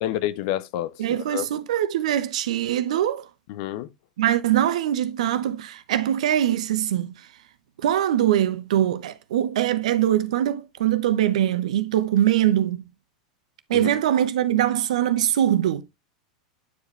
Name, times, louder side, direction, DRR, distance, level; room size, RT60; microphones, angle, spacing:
voice 1, 0.0-1.5 3.5-3.9 13.7-13.9, left 13 dB, 60° left, 0.7 m, -29 dB
voice 2, 1.0-3.3 4.2-7.2 7.8-12.8 13.7-15.8, right 11 dB, 75° right, 0.9 m, -22 dB
9.3 x 4.8 x 3.2 m
hypercardioid pair, 95°, 4 cm